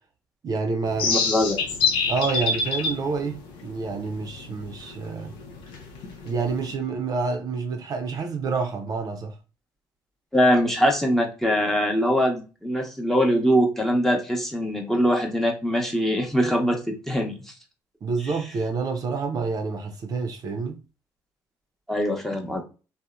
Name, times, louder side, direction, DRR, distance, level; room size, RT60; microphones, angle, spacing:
voice 1, 0.4-1.1 2.1-5.3 6.2-9.4 18.0-20.8, right 4 dB, 50° right, 0.5 m, -28 dB
sound 1, 0.8-6.7, left 4 dB, 80° left, 0.6 m, -27 dB
voice 2, 1.1-1.6 10.3-17.3 21.9-22.6, equal, 5° left, 0.8 m, -22 dB
2.7 x 2.1 x 2.3 m
supercardioid pair, 70°, 8 cm